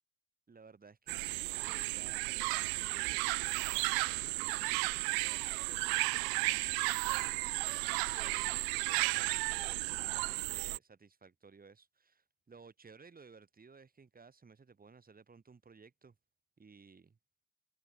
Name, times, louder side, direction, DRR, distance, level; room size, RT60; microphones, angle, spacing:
voice 1, 0.5-7.8 8.2-16.2 16.6-17.2, right 5 dB, 20° right, 7.7 m, -58 dB
sound 1, 1.1-10.8, right 40 dB or more, 50° right, 1.0 m, -34 dB
figure-of-eight pair, 75°, 45 cm